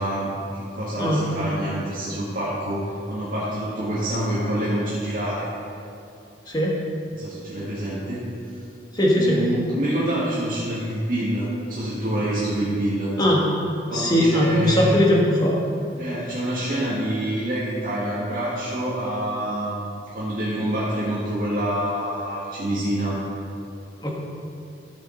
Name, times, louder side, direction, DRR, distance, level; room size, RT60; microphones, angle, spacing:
voice 1, 0.0-2.8 3.1-5.5 7.1-8.3 9.2-13.1 13.9-14.9 16.0-23.2, right 1 dB, 50° right, -9 dB, 2.0 m, -26 dB
voice 2, 6.5-6.8 8.9-9.4 13.2-13.4 13.9-15.6 24.0-24.1, equal, 25° left, -3 dB, 1.7 m, -19 dB
14.5 x 7.2 x 4.5 m, 2.5 s
head